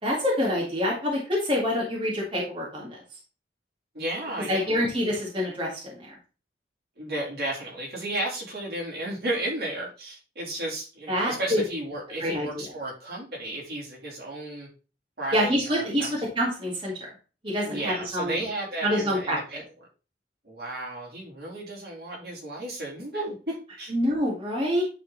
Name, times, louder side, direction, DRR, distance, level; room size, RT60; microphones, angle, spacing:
voice 1, 0.0-3.0 4.5-6.1 11.1-11.6 12.2-12.5 15.3-16.1 16.4-17.1 17.4-18.4 18.8-19.6 23.9-24.8, equal, 30° right, -4 dB, 1.9 m, -26 dB
voice 2, 3.9-4.9 7.0-14.7 15.2-16.1 17.6-19.6 20.4-23.9, right 1 dB, 60° right, -4 dB, 3.2 m, -33 dB
10.0 x 4.0 x 3.9 m, 0.34 s
head